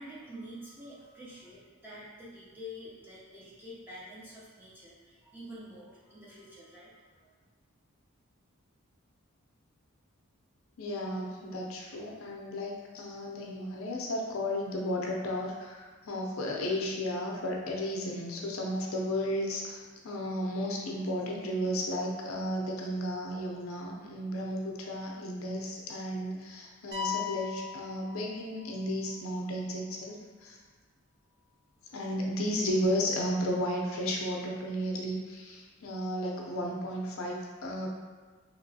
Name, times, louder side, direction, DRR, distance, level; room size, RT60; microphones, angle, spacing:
voice 1, 0.0-7.3, equal, 10° right, -8 dB, 0.7 m, -47 dB
voice 2, 10.8-30.6 31.9-37.9, equal, 70° left, -1 dB, 0.5 m, -33 dB
sound 1, 26.9-28.8, left 7 dB, 55° right, 0.6 m, -37 dB
3.0 x 2.9 x 2.7 m, 1.3 s
head